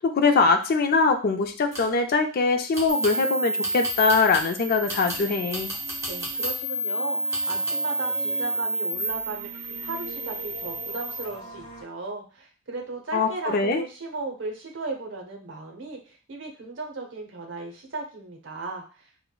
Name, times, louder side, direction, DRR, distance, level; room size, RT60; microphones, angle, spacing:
voice 1, 0.0-5.7 13.1-13.8, left 4 dB, 45° left, 6 dB, 0.3 m, -22 dB
sound 1, 1.4-2.0 2.7-3.2 3.6-4.5 4.9-6.6 7.3-7.7, right 1 dB, 15° right, 1.0 m, -37 dB
sound 2, 2.9-11.2, right 1 dB, 75° left, 0.8 m, -30 dB
sound 3, 4.7-11.8, right 2 dB, 25° left, 1.0 m, -44 dB
voice 2, 6.1-19.1, right 3 dB, 60° right, 2 dB, 0.7 m, -36 dB
4.3 x 2.1 x 2.3 m, 0.38 s
head